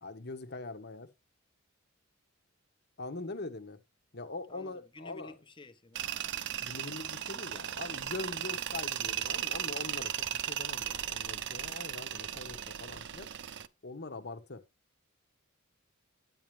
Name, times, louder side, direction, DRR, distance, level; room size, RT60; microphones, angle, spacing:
voice 1, 0.0-1.1 3.0-3.8 4.1-5.4 6.0-13.3 13.8-14.6, left 3 dB, 50° left, 1.4 m, -43 dB
voice 2, 4.5-6.3, left 1 dB, 25° left, 1.1 m, -52 dB
Tools, 6.0-13.7, right 10 dB, 60° right, 0.7 m, -36 dB
9.9 x 9.1 x 3.3 m
head